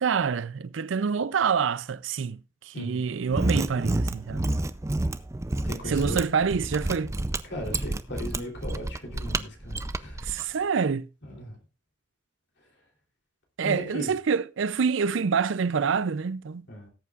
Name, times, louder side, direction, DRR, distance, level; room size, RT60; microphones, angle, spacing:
voice 1, 0.0-4.5 5.9-7.1 10.3-11.1 13.6-16.7, right 6 dB, 85° right, 0.5 m, -26 dB
voice 2, 2.7-3.0 5.6-6.2 7.4-10.2 11.2-11.6 12.6-12.9 13.6-14.1 16.7-16.9, equal, 65° left, 3.2 m, -37 dB
Mechanisms, 3.2-10.4, right 2 dB, 15° right, 0.4 m, -29 dB
18.5 x 8.3 x 2.4 m
head